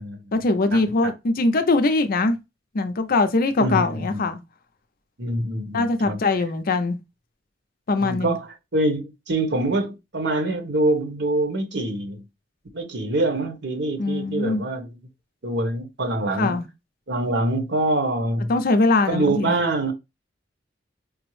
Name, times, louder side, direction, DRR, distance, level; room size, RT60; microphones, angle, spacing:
voice 1, 0.3-2.4 2.7-4.4 5.7-7.0 7.9-8.4 14.0-14.6 16.4-16.7 18.5-19.5, left 3 dB, 50° left, 0.5 m, -21 dB
voice 2, 3.6-4.2 5.2-6.2 8.0-8.5 8.7-12.2 12.7-15.0 15.4-16.6 17.1-18.5 19.1-19.9, right 2 dB, 65° right, 1.0 m, -25 dB
5.2 x 2.0 x 3.1 m
head